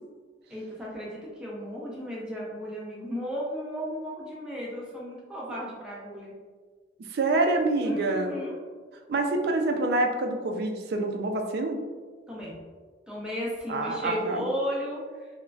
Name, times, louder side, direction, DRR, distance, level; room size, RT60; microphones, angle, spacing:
voice 1, 0.5-6.3 7.8-8.6 12.3-12.6 13.1-15.0, equal, 5° right, -6 dB, 0.6 m, -34 dB
voice 2, 7.1-8.4 9.1-11.8 13.7-14.5, right 2 dB, 60° right, 4 dB, 0.3 m, -26 dB
3.7 x 2.1 x 2.3 m, 1.5 s
head